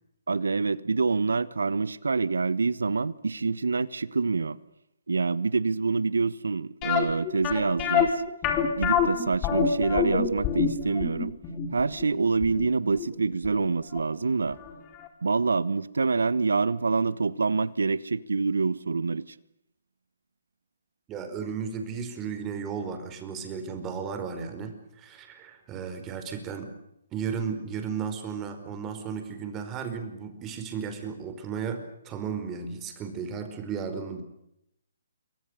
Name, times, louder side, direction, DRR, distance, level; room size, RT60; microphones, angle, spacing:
voice 1, 0.3-4.6 5.1-8.1 8.8-11.3 11.7-14.6 15.2-19.2, right 4 dB, 75° right, 1.2 m, -26 dB
sound 1, 6.8-13.7 14.0-14.1 14.6-14.8 15.0-15.1, left 8 dB, 25° left, 4.4 m, -26 dB
voice 2, 21.1-26.7 27.1-34.2, right 6 dB, 20° right, 4.9 m, -34 dB
27.5 x 24.5 x 6.7 m
figure-of-eight pair, 135°, 0 cm